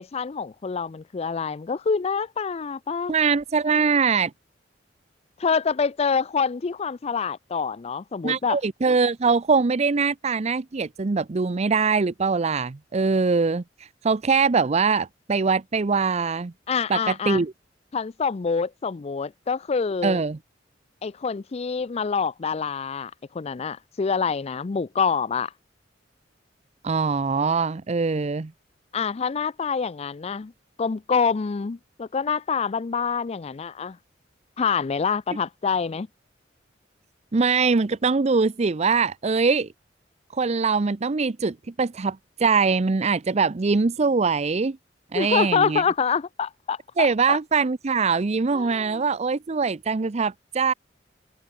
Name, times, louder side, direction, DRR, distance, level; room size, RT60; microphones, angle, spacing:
voice 1, 0.0-3.1 5.4-8.6 16.7-17.4 17.9-20.2 21.0-25.5 28.9-30.5 30.8-34.0 34.6-36.1 45.1-47.4 48.5-49.0, left 5 dB, 35° left, 0.4 m, -26 dB
voice 2, 3.1-4.3 8.2-16.5 16.9-17.5 20.0-20.4 26.8-28.5 37.3-39.7 40.3-44.8 45.1-45.8 47.0-50.7, right 4 dB, 35° right, 0.5 m, -22 dB
head